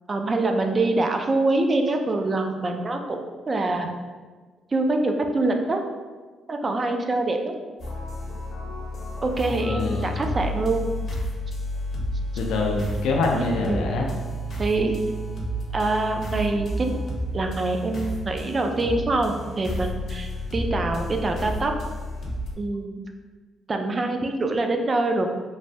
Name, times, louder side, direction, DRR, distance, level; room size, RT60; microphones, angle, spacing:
voice 1, 0.1-3.2 3.5-3.9 4.7-5.8 6.5-7.6 9.2-10.9 13.3-13.8 14.6-15.0 15.7-17.0 17.3-21.7 22.6-23.0 23.7-25.3, right 2 dB, 35° right, 4 dB, 0.3 m, -25 dB
sound 1, 7.8-22.5, equal, 50° left, 0.7 m, -31 dB
voice 2, 9.6-10.1 12.3-14.1, left 3 dB, 85° left, 0 dB, 0.4 m, -25 dB
3.1 x 2.2 x 2.7 m, 1.4 s
cardioid pair, 90°, 0 cm